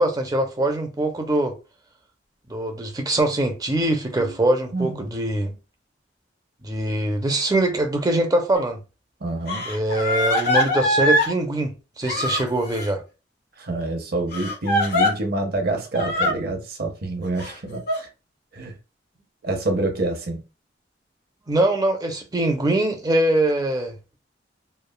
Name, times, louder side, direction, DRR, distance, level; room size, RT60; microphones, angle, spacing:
voice 1, 0.0-1.5 2.5-5.5 6.6-8.8 9.6-13.0 21.5-24.0, right 1 dB, 20° right, 0.5 m, -23 dB
voice 2, 4.7-5.1 9.2-9.6 13.6-18.1 18.5-18.7 19.4-20.4, right 2 dB, 55° right, 0.7 m, -27 dB
Crying sobbing, 8.5-8.6 9.5-11.3 12.0-12.9 14.3-15.1 15.9-16.3 17.4-18.0, left 1 dB, 60° left, 1.3 m, -22 dB
3.1 x 2.3 x 2.2 m
head